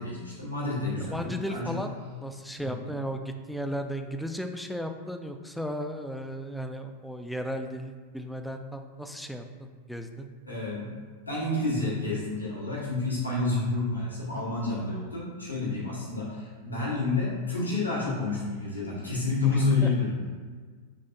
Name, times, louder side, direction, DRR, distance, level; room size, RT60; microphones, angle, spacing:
voice 1, 0.0-1.6 2.6-2.7 10.5-11.0 11.3-20.1, left 3 dB, 85° left, -7 dB, 1.1 m, -29 dB
voice 2, 1.1-1.9 2.2-10.3 19.5-19.9, equal, ahead, 5 dB, 0.3 m, -35 dB
5.3 x 3.3 x 2.6 m, 1.5 s
figure-of-eight pair, 90°, 0 cm